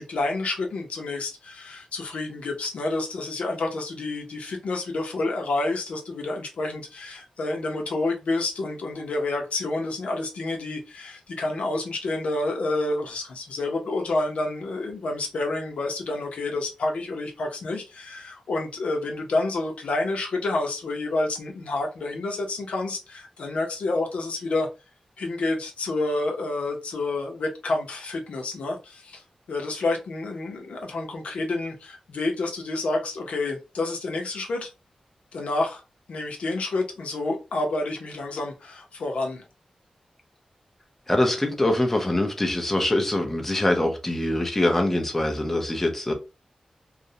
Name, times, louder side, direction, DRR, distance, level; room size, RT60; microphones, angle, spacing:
voice 1, 0.0-24.7 25.2-34.7 35.3-35.8 36.1-39.5, left 2 dB, 85° left, 0.6 m, -29 dB
voice 2, 41.1-46.1, left 1 dB, 10° left, 0.5 m, -23 dB
2.4 x 2.0 x 2.6 m
wide cardioid pair, 145°, 2 cm